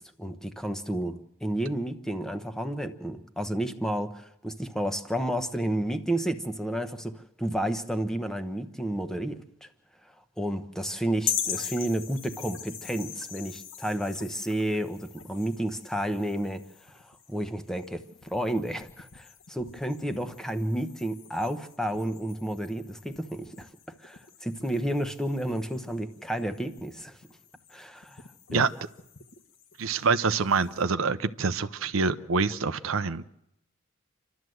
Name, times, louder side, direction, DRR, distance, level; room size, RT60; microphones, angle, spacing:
voice 1, 0.0-9.7 10.4-23.7 24.0-27.2 27.7-28.2 28.5-28.6, right 1 dB, ahead, 8 dB, 1.0 m, -31 dB
sound 1, 11.2-30.8, left 8 dB, 65° left, 1.4 m, -41 dB
voice 2, 29.8-33.2, right 4 dB, 75° right, 13 dB, 0.7 m, -26 dB
28.0 x 12.5 x 7.9 m, 0.82 s
head